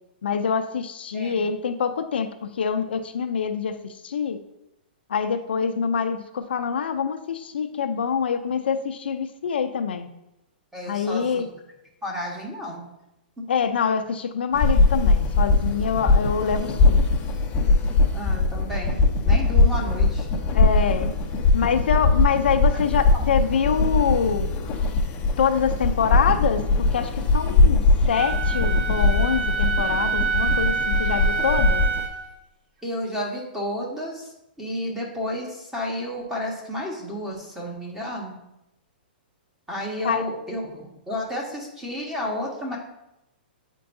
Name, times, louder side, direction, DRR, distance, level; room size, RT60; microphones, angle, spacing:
voice 1, 0.2-4.4 5.1-10.1 10.9-11.4 13.5-17.0 20.5-21.1 21.5-24.5 25.4-31.8 40.0-40.2, left 6 dB, 80° left, 8 dB, 0.5 m, -25 dB
voice 2, 1.1-1.6 10.7-11.5 12.0-12.8 13.4-13.5 18.1-20.3 21.0-21.1 22.7-23.2 32.8-38.4 39.7-42.8, left 1 dB, 5° right, -2 dB, 1.3 m, -32 dB
sound 1, 14.5-32.1, left 3 dB, 25° left, 0.6 m, -21 dB
Wind instrument woodwind instrument, 28.1-32.3, right 6 dB, 60° right, 1.2 m, -27 dB
8.7 x 4.5 x 2.6 m, 0.89 s
hypercardioid pair, 145°, 6 cm